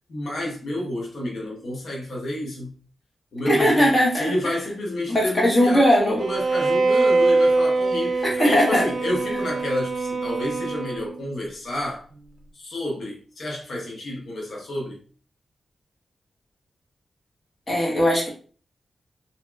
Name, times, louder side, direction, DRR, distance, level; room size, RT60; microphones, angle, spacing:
voice 1, 0.1-2.7 3.3-12.0 12.5-15.0, left 1 dB, 80° left, 0.8 m, -30 dB
voice 2, 3.5-4.3 5.1-6.2 8.2-8.8 17.7-18.3, equal, 30° left, 1.1 m, -19 dB
Bowed string instrument, 6.2-11.3, right 3 dB, 60° right, 0.4 m, -23 dB
2.9 x 2.8 x 2.3 m
wide cardioid pair, 115°, 0 cm